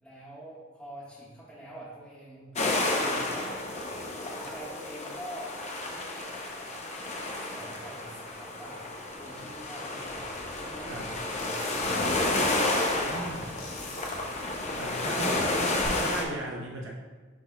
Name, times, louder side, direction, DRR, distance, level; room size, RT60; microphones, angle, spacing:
voice 1, 0.0-2.6 3.0-3.6 4.3-6.3 6.6-8.9 9.2-12.1 16.7-16.8, right 1 dB, 5° left, -8 dB, 1.4 m, -46 dB
sound 1, 2.6-16.2, left 2 dB, 35° left, 0.6 m, -31 dB
sound 2, 10.0-15.9, left 2 dB, 90° left, 1.5 m, -47 dB
voice 2, 13.1-13.6 14.7-16.9, right 1 dB, 65° right, -1 dB, 0.7 m, -37 dB
11.0 x 4.1 x 2.3 m, 1.4 s
head